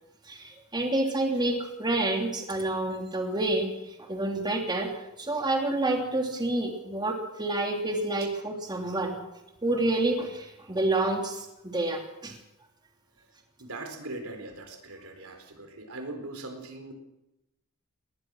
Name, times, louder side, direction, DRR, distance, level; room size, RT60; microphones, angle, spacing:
voice 1, 0.2-4.9 5.2-9.2 9.6-11.5 11.7-12.4, right 2 dB, 20° right, 2 dB, 2.9 m, -28 dB
voice 2, 13.6-16.9, right 2 dB, 75° right, 5 dB, 4.2 m, -40 dB
21.5 x 19.5 x 6.3 m, 0.92 s
head